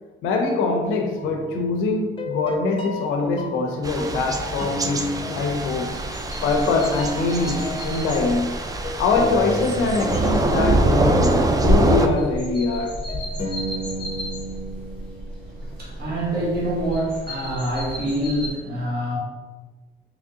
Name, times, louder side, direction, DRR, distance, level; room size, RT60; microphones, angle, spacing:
voice 1, 0.2-5.9 6.4-8.5 9.0-13.0, left 3 dB, 90° left, 3 dB, 0.5 m, -23 dB
sound 1, 1.2-1.7 2.2-6.7 7.0-15.8, left 1 dB, 25° left, 0.6 m, -34 dB
Thunder / Rain, 3.8-12.1, right 2 dB, 20° right, 0.3 m, -24 dB
sound 2, 5.9-18.5, equal, 5° left, 1.5 m, -31 dB
voice 2, 15.5-19.2, right 1 dB, 55° right, -6 dB, 1.4 m, -26 dB
3.6 x 3.0 x 2.7 m, 1.3 s
cardioid pair, 90°, 20 cm